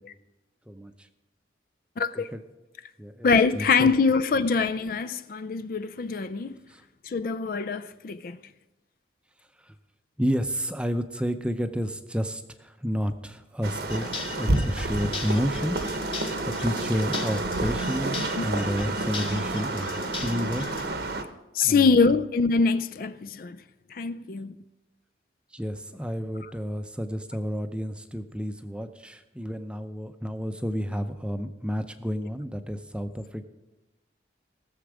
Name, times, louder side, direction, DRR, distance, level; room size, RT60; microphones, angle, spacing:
voice 1, 0.7-1.1 2.2-2.4 3.0-3.3 3.5-3.9 6.7-6.8 9.6-9.7 10.2-19.9 20.2-20.7 21.6-21.9 25.5-33.5, equal, 5° right, 0.6 m, -31 dB
voice 2, 2.0-2.3 3.2-6.6 7.0-8.4 18.4-18.5 21.5-23.6 23.9-24.6 26.4-26.5, left 4 dB, 50° left, 0.4 m, -24 dB
sound 1, 13.6-21.2, right 2 dB, 60° right, 1.0 m, -30 dB
sound 2, 13.9-20.8, left 3 dB, 30° left, 1.3 m, -38 dB
18.5 x 7.2 x 4.9 m
head